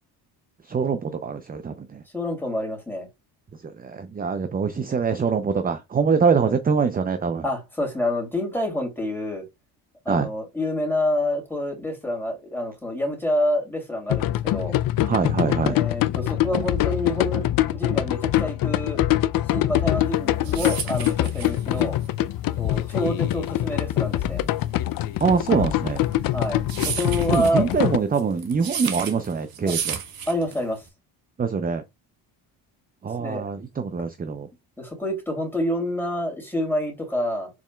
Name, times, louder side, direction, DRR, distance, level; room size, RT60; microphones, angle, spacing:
voice 1, 0.7-2.0 3.6-7.4 10.1-10.3 15.0-15.8 25.2-26.0 27.3-30.0 31.4-31.8 33.0-34.5, right 5 dB, 20° right, 0.5 m, -24 dB
voice 2, 2.1-3.1 6.4-6.5 7.4-9.4 10.0-14.8 15.6-19.0 19.5-22.0 22.6-24.4 26.3-27.7 29.6-29.7 30.3-30.8 33.2-33.4 34.8-37.5, left 1 dB, 5° left, 2.8 m, -27 dB
sound 1, 14.1-28.0, left 14 dB, 50° left, 0.5 m, -24 dB
sound 2, 20.1-30.9, right 8 dB, 50° right, 1.2 m, -34 dB
4.7 x 4.1 x 2.3 m
supercardioid pair, 70°, 46 cm